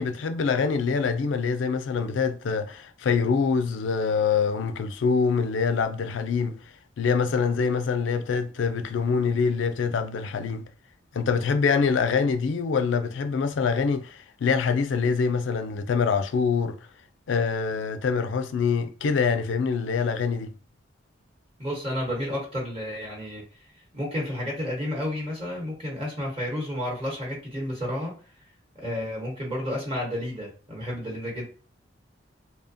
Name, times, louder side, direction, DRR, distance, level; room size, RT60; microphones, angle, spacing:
voice 1, 0.0-6.6 7.0-10.7 11.1-16.8 17.3-20.5, left 5 dB, 75° left, 0.4 m, -25 dB
voice 2, 21.6-23.4 23.9-28.1 28.7-31.4, left 1 dB, 30° right, 1.0 m, -31 dB
2.7 x 2.1 x 2.6 m
head